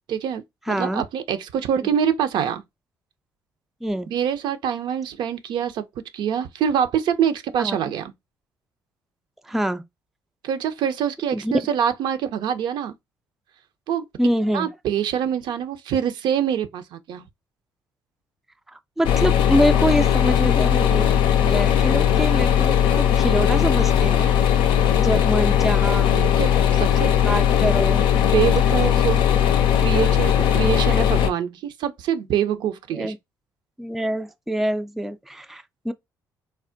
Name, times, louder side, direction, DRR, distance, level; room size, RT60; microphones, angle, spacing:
voice 1, 0.1-2.6 4.1-5.8 6.1-8.1 10.4-12.9 13.9-14.1 14.5-17.3 26.1-27.2 28.3-29.2 29.8-33.1, right 8 dB, 65° right, 0.4 m, -25 dB
voice 2, 0.7-1.0 3.8-4.1 7.6-7.8 9.5-9.8 11.3-11.5 14.2-14.7 18.7-21.1 21.4-24.3 25.0-26.1 27.2-28.1 30.8-31.0 32.9-33.2 33.8-35.9, equal, 5° right, 0.3 m, -25 dB
sound 1, 19.0-31.3, left 9 dB, 75° left, 0.4 m, -18 dB
3.3 x 2.1 x 2.5 m
hypercardioid pair, 55°, 8 cm